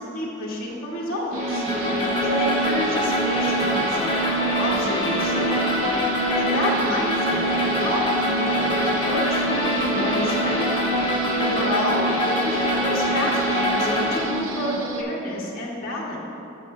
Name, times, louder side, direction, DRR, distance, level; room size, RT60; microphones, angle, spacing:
voice 1, 0.0-1.6 2.2-4.3 4.6-5.5 6.3-10.6 11.4-16.2, left 1 dB, 45° left, -6 dB, 1.6 m, -29 dB
sound 1, 1.3-15.0, right 3 dB, 75° right, 0.8 m, -28 dB
sound 2, 1.4-14.2, left 1 dB, 25° left, 0.9 m, -24 dB
15.5 x 5.9 x 2.7 m, 2.6 s
head